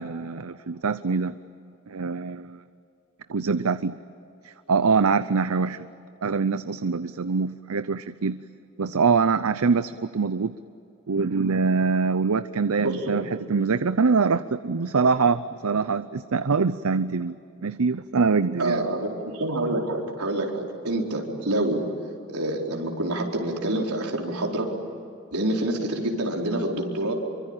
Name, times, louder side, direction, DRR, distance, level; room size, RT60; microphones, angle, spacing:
voice 1, 0.0-1.3 1.9-2.6 3.3-4.0 4.4-5.9 6.2-8.4 8.8-10.6 11.1-17.4 17.6-18.9, right 5 dB, 75° right, 13 dB, 0.6 m, -24 dB
voice 2, 12.8-13.2 18.6-21.8 22.3-24.7 25.3-27.1, right 1 dB, 90° right, 0 dB, 4.5 m, -27 dB
27.0 x 24.5 x 9.0 m, 2.7 s
head